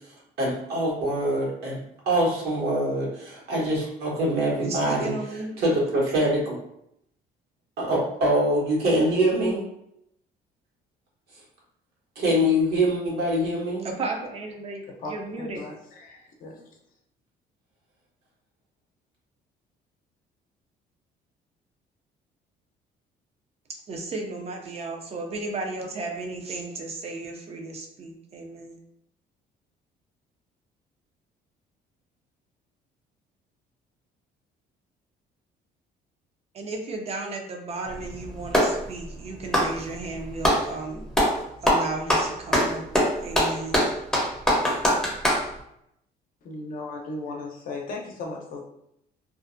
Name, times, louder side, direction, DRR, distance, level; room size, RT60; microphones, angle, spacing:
voice 1, 0.4-1.8 2.1-5.1 5.6-6.5 7.8-9.6 12.2-13.8, equal, 70° right, -5 dB, 1.2 m, -24 dB
voice 2, 4.6-5.6 13.8-15.6 23.9-28.8 36.5-41.1 41.6-42.9 43.2-43.9, right 3 dB, 35° right, 2 dB, 0.5 m, -34 dB
voice 3, 15.0-16.7 46.4-48.6, left 2 dB, 55° left, 0 dB, 0.6 m, -37 dB
Clapping, 37.9-38.8 39.4-40.7 41.1-41.4 41.7-45.5, equal, 5° left, 0.7 m, -22 dB
2.5 x 2.0 x 2.5 m, 0.76 s
cardioid pair, 110°, 17 cm